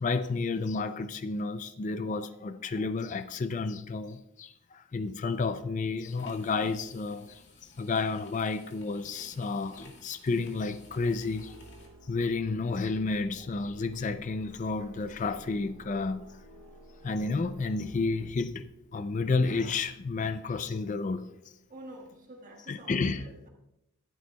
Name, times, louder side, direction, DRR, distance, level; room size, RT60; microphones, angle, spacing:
voice 1, 0.0-7.4 7.8-11.6 12.1-16.2 17.0-21.3 22.7-23.2, left 4 dB, 35° left, 0.4 m, -31 dB
sound 1, 6.0-11.9, left 2 dB, 50° left, 2.0 m, -53 dB
sound 2, 10.3-18.3, right 1 dB, 65° right, 0.8 m, -52 dB
voice 2, 21.7-23.5, right 1 dB, 35° right, 1.5 m, -48 dB
14.5 x 11.0 x 2.3 m
head